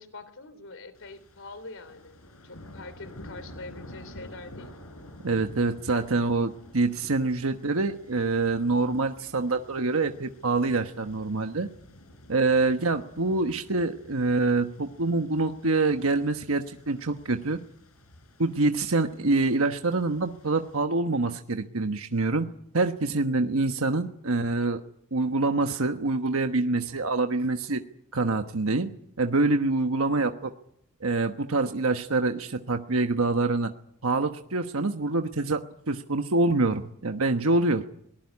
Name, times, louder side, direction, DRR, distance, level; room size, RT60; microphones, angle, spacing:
voice 1, 0.0-2.2 2.4-4.7, left 3 dB, 65° left, 13 dB, 3.6 m, -44 dB
sound 1, 0.9-20.8, left 1 dB, 85° left, 5.1 m, -50 dB
voice 2, 5.2-11.7 12.3-17.6 18.4-22.5 22.7-24.8 25.1-27.8 28.1-28.9 29.2-30.5 31.0-33.7 34.0-35.6 35.9-37.8, right 3 dB, 70° right, 6 dB, 1.2 m, -25 dB
22.5 x 19.5 x 9.7 m, 0.70 s
head